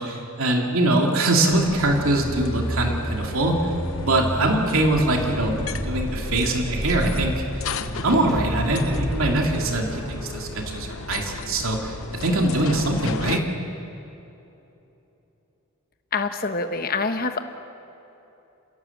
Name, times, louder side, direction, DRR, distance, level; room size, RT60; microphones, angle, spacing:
voice 1, 0.0-3.6 4.0-7.4 8.0-13.4, right 2 dB, 75° right, 1 dB, 2.7 m, -23 dB
sound 1, 1.5-13.4, left 4 dB, 75° left, 0.9 m, -35 dB
sound 2, 1.8-11.9 12.3-12.6, equal, ahead, 3.3 m, -31 dB
voice 2, 16.1-17.4, left 4 dB, 40° left, 7 dB, 1.2 m, -25 dB
30.0 x 16.5 x 7.3 m, 3.0 s
head